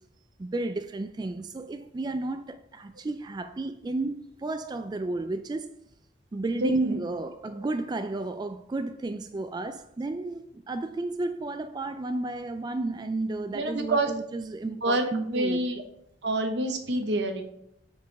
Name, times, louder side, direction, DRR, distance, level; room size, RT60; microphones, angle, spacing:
voice 1, 0.4-5.7 6.3-15.6, right 2 dB, 25° right, 0.3 m, -32 dB
voice 2, 6.6-7.0 13.5-14.1 14.8-15.8 16.2-17.4, right 1 dB, 80° right, 1.0 m, -27 dB
6.9 x 4.8 x 4.6 m
head